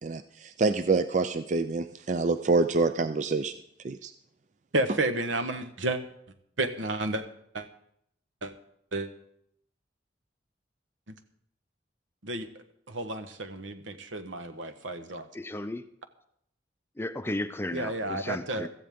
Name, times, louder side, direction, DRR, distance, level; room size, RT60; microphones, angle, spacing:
voice 1, 0.0-3.5 3.8-4.1, right 3 dB, 40° right, 10 dB, 0.4 m, -26 dB
voice 2, 4.7-6.0 6.6-7.2 7.5-7.7 8.4-8.5 8.9-9.1 12.2-12.5 12.9-15.3 17.7-18.7, right 2 dB, 90° right, 7 dB, 1.3 m, -31 dB
voice 3, 15.3-15.9 17.0-18.7, left 1 dB, 10° left, 10 dB, 0.5 m, -34 dB
16.0 x 14.0 x 3.6 m, 0.71 s
head